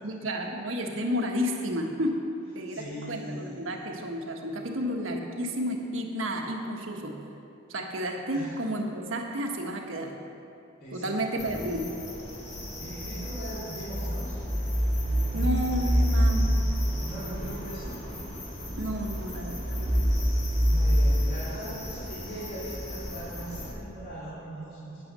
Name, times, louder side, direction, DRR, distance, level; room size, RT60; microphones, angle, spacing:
voice 1, 0.0-2.2 2.5-7.2 7.7-10.2 10.9-11.9 15.3-16.7 18.8-20.0, equal, 75° right, 2 dB, 1.4 m, -31 dB
voice 2, 2.7-3.8 8.3-8.5 10.8-11.4 12.8-14.3 15.0-15.5 15.8-16.0 17.0-17.9 20.6-25.0, right 1 dB, 50° left, -11 dB, 2.9 m, -40 dB
sound 1, 11.4-23.7, equal, 35° left, 2.1 m, -28 dB
9.8 x 9.2 x 6.8 m, 2.6 s
head